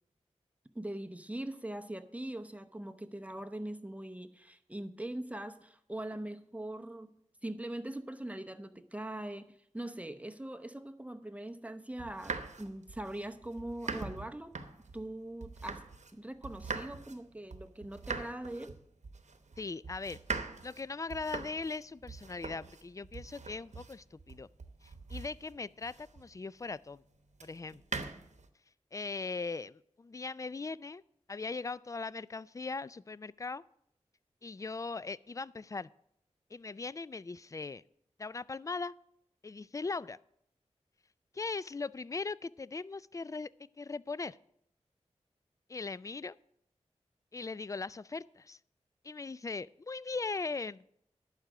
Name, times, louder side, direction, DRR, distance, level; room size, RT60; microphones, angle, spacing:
voice 1, 0.7-14.5 14.9-15.8 16.1-18.8, right 1 dB, 10° right, 8 dB, 0.8 m, -42 dB
sound 1, 12.0-16.2 16.4-26.4 27.4-28.5, right 4 dB, 70° right, 0.9 m, -43 dB
voice 2, 19.6-20.2 20.6-24.5 24.8-27.0 27.4-28.0 28.9-31.0 31.3-33.6 34.4-35.9 36.5-37.8 38.2-38.9 39.4-40.2 41.3-43.5 43.8-44.4 45.7-46.4 47.3-48.6 49.0-50.8, left 4 dB, 25° left, 20 dB, 0.3 m, -39 dB
11.5 x 4.9 x 8.0 m, 0.72 s
cardioid pair, 45°, 12 cm